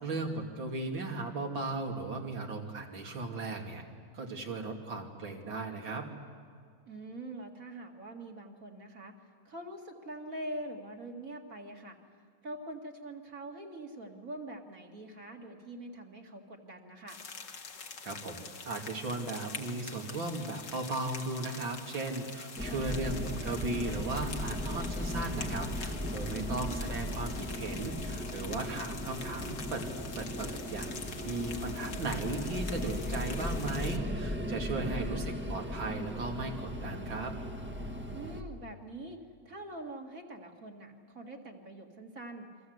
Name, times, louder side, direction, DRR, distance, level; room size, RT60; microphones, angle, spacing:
voice 1, 0.0-3.8 4.1-6.1 18.0-29.8 30.2-37.3, right 2 dB, 65° right, 1 dB, 3.4 m, -37 dB
voice 2, 6.9-9.1 9.4-12.0 12.4-17.2 22.6-22.8 26.3-26.8 34.7-35.4 38.1-39.2 39.4-42.5, right 1 dB, 40° right, 1 dB, 2.7 m, -44 dB
sound 1, 17.1-34.0, left 5 dB, 55° left, 2.2 m, -45 dB
sound 2, 22.6-38.4, equal, 5° right, 1.3 m, -37 dB
29.0 x 24.5 x 8.1 m, 2.1 s
omnidirectional pair, 2.3 m